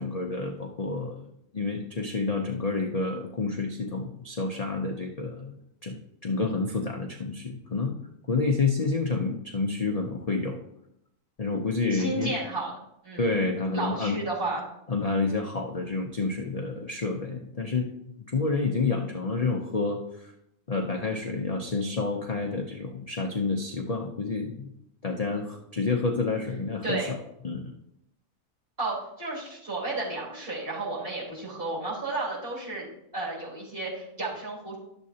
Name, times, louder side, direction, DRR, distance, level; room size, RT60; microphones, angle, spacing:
voice 1, 0.0-6.0 6.2-8.0 8.3-10.6 11.4-12.3 13.1-14.2 14.9-17.9 18.3-20.3 20.7-24.7 25.0-27.2 27.4-27.7, left 3 dB, 40° left, 2 dB, 0.6 m, -29 dB
voice 2, 11.9-12.7 13.0-13.3 13.7-14.6 26.8-27.1 28.8-32.9 33.1-34.8, right 2 dB, 40° right, -8 dB, 4.3 m, -32 dB
11.5 x 7.5 x 2.8 m, 0.79 s
omnidirectional pair, 1.5 m